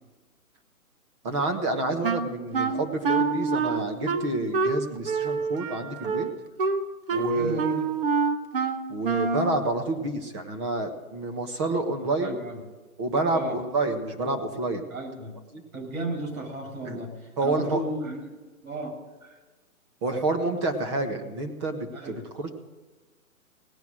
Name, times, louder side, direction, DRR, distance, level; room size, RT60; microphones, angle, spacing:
voice 1, 1.2-6.3 7.1-7.6 8.9-12.4 13.0-14.8 15.5-15.6 16.8-17.0 17.4-17.9 20.0-22.5, right 2 dB, 20° right, 4 dB, 1.4 m, -28 dB
Wind instrument woodwind instrument, 2.0-9.6, right 4 dB, 40° right, 1.1 m, -27 dB
voice 2, 7.1-7.8 12.2-12.6 13.3-13.6 14.9-15.4 15.7-18.3 18.6-19.4 21.9-22.2, right 1 dB, 70° right, 2 dB, 5.7 m, -34 dB
17.5 x 10.5 x 6.2 m, 1.2 s
hypercardioid pair, 165°, 44 cm